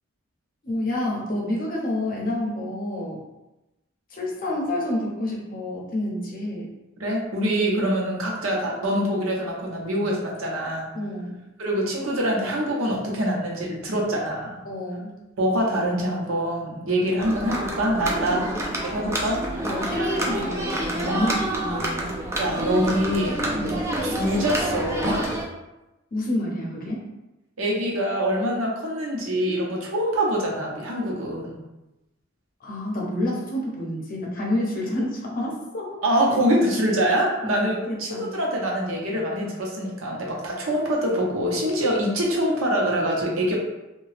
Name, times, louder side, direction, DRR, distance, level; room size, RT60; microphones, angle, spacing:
voice 1, 0.6-3.2 4.1-6.7 10.9-11.4 14.7-15.1 18.2-18.5 19.6-22.1 23.5-23.9 26.1-27.1 32.6-36.0 37.4-38.3, left 1 dB, 45° left, -2 dB, 0.7 m, -29 dB
voice 2, 7.0-10.9 11.6-14.6 15.4-19.7 19.9-20.3 21.1-21.3 22.4-23.5 24.0-25.3 27.6-31.6 36.0-43.6, equal, 80° right, -2 dB, 0.8 m, -25 dB
sound 1, 17.2-25.5, right 1 dB, 15° right, 0.4 m, -28 dB
2.8 x 2.3 x 3.2 m, 0.98 s
head